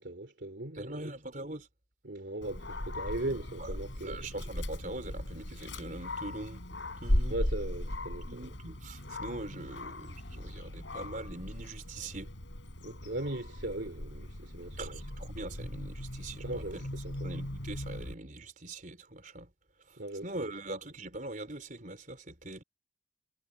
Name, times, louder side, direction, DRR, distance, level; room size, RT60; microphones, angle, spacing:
voice 1, 0.0-1.1 2.0-4.3 7.3-8.6 12.8-15.0 16.4-17.3 20.0-20.5, right 1 dB, 70° right, 2.9 m, -39 dB
voice 2, 0.7-1.7 3.6-3.7 4.0-6.6 7.0-7.4 8.2-12.3 14.8-16.9 17.2-19.5 19.9-22.6, right 2 dB, 45° right, 4.5 m, -42 dB
Dog, 2.4-18.1, left 1 dB, 85° left, 3.7 m, -38 dB
head